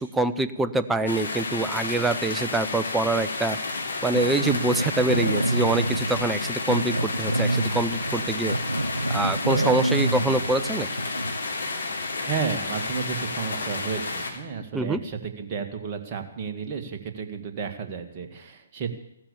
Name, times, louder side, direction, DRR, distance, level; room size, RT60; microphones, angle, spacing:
voice 1, 0.0-3.6 4.0-8.6 9.1-10.9 14.7-15.0, right 2 dB, 5° right, 11 dB, 0.6 m, -25 dB
sound 1, 1.1-14.3, left 3 dB, 65° left, 3.4 m, -31 dB
Growling, 4.1-11.5, right 1 dB, 90° right, 0.8 m, -27 dB
voice 2, 12.3-18.9, right 6 dB, 30° right, 4 dB, 2.2 m, -32 dB
15.5 x 13.0 x 7.0 m, 0.77 s
figure-of-eight pair, 130°, 0 cm